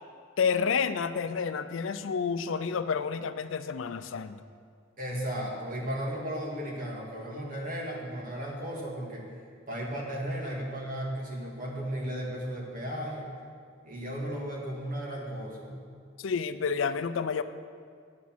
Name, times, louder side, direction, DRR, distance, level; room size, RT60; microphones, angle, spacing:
voice 1, 0.4-4.4 16.2-17.4, left 6 dB, 75° left, 11 dB, 0.4 m, -29 dB
voice 2, 5.0-9.3 9.7-13.3 13.8-15.8, equal, 45° right, -2 dB, 2.0 m, -35 dB
8.5 x 8.3 x 6.0 m, 2.1 s
head